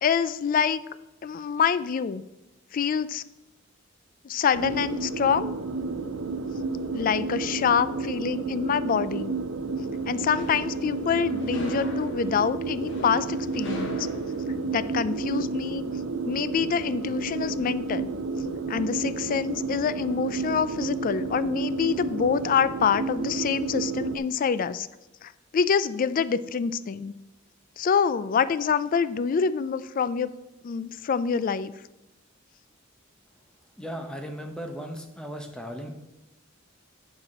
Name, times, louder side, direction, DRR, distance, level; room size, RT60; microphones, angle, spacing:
voice 1, 0.0-0.8 1.2-2.2 2.7-3.2 4.2-5.5 6.9-9.3 10.1-14.1 14.7-15.8 16.3-18.1 18.7-24.9 25.2-27.1 27.8-30.3 30.6-31.7, left 6 dB, 45° left, 15 dB, 0.3 m, -26 dB
sound 1, 4.5-24.2, right 4 dB, 75° right, 0.6 m, -31 dB
sound 2, 9.9-15.1, left 1 dB, 65° left, 1.1 m, -42 dB
voice 2, 33.8-35.9, equal, 5° left, 3 dB, 0.7 m, -36 dB
9.6 x 4.8 x 4.2 m, 0.99 s
head